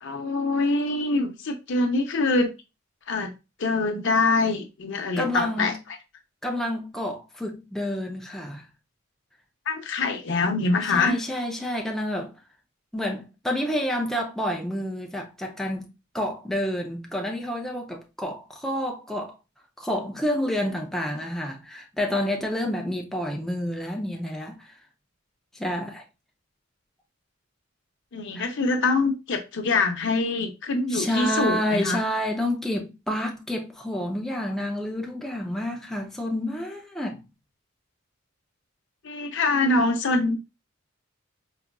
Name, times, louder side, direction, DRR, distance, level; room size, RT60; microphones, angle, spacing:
voice 1, 0.0-2.5 3.1-3.3 3.6-5.7 9.7-11.2 28.1-32.0 39.0-40.4, left 3 dB, 60° left, 0.6 m, -24 dB
voice 2, 5.2-5.7 6.4-8.7 10.9-12.3 12.9-15.9 16.1-19.4 19.8-24.8 25.5-26.0 28.3-28.5 30.9-37.2, left 1 dB, ahead, 0.4 m, -29 dB
4.7 x 2.4 x 2.2 m
head